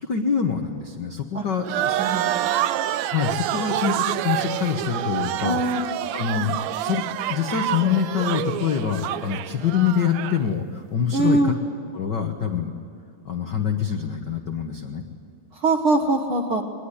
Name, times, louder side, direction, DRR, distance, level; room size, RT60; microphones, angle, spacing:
voice 1, 0.0-2.0 3.1-5.6 6.1-7.0 7.3-11.5 11.9-12.7 13.2-15.0, left 7 dB, 75° left, 4 dB, 0.9 m, -25 dB
sound 1, 1.7-10.4, right 12 dB, 90° right, 1.5 m, -27 dB
voice 2, 2.0-2.5 5.4-5.8 11.1-11.5 15.6-16.6, right 2 dB, 55° right, 3 dB, 1.5 m, -22 dB
21.5 x 20.5 x 9.9 m, 2.6 s
omnidirectional pair, 4.0 m